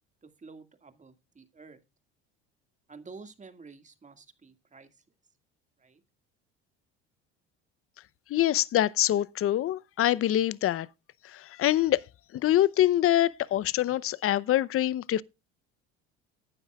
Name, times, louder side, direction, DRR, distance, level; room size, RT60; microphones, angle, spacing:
voice 1, 0.2-1.8 2.9-5.0 5.8-6.0, right 4 dB, 25° right, 2.0 m, -50 dB
voice 2, 8.3-10.9 11.2-12.0 12.3-15.2, left 13 dB, 45° left, 0.7 m, -25 dB
18.0 x 9.7 x 2.3 m
supercardioid pair, 80°, 31 cm